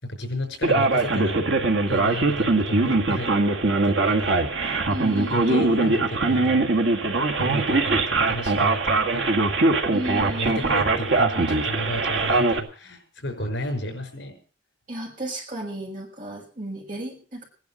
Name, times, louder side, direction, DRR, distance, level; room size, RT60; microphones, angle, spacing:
voice 1, 0.0-1.4 1.9-3.3 3.8-6.6 7.3-9.4 10.3-14.4, equal, 65° left, 6 dB, 5.5 m, -33 dB
Male speech man speaking, 0.6-12.6, right 3 dB, 70° right, 1.9 m, -22 dB
voice 2, 4.9-5.6 9.9-10.8 14.9-17.5, right 1 dB, 45° right, 0 dB, 6.8 m, -33 dB
17.5 x 10.5 x 6.4 m, 0.40 s
head